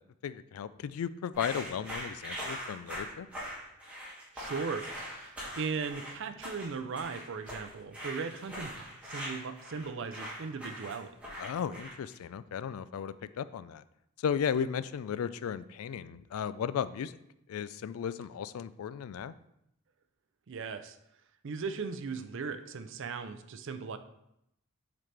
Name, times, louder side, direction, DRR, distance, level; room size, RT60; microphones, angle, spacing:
voice 1, 0.2-3.3 11.4-13.8 14.2-17.1 17.5-19.3, left 8 dB, 90° left, 15 dB, 0.3 m, -35 dB
sound 1, 1.3-12.1, equal, 5° right, 1.8 m, -42 dB
voice 2, 4.3-11.1 20.5-21.0 21.4-24.0, right 5 dB, 60° right, 10 dB, 0.5 m, -38 dB
7.4 x 4.0 x 3.3 m, 0.80 s
head